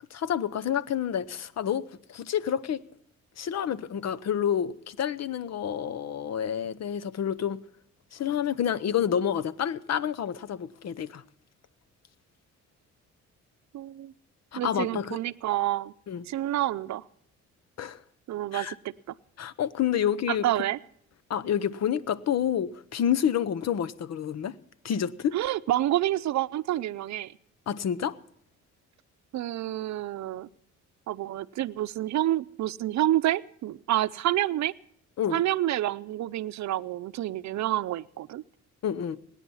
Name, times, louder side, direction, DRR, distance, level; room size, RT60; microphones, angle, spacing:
voice 1, 0.1-1.8 2.1-2.8 3.4-7.6 8.1-11.2 14.5-15.2 16.1-16.2 17.8-18.0 18.5-18.8 19.4-20.5 21.3-24.5 24.8-25.4 27.7-28.2 35.2-35.4 38.8-39.2, left 9 dB, 60° left, 0.9 m, -28 dB
voice 2, 13.7-14.1 14.6-15.9 16.3-17.0 18.3-18.8 19.1-19.2 20.3-20.8 25.3-27.3 29.3-30.5 31.1-34.7 35.3-38.4, right 14 dB, 65° right, 0.7 m, -28 dB
21.5 x 10.0 x 5.6 m
cardioid pair, 90°, 30 cm